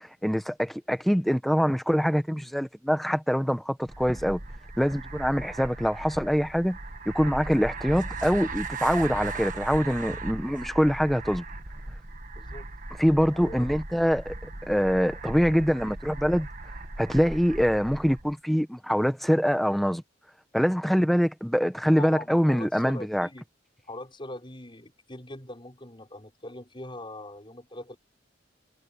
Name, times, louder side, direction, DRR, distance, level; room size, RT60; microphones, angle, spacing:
voice 1, 0.0-4.4 4.8-6.8 7.0-11.4 13.0-14.3 14.6-16.5 17.0-20.0 20.5-23.3, equal, ahead, 1.5 m, -24 dB
sound 1, 3.9-18.3, right 3 dB, 45° right, 1.8 m, -38 dB
voice 2, 12.3-12.7 13.3-13.7 22.0-23.4 23.9-28.0, left 1 dB, 25° left, 6.5 m, -41 dB
head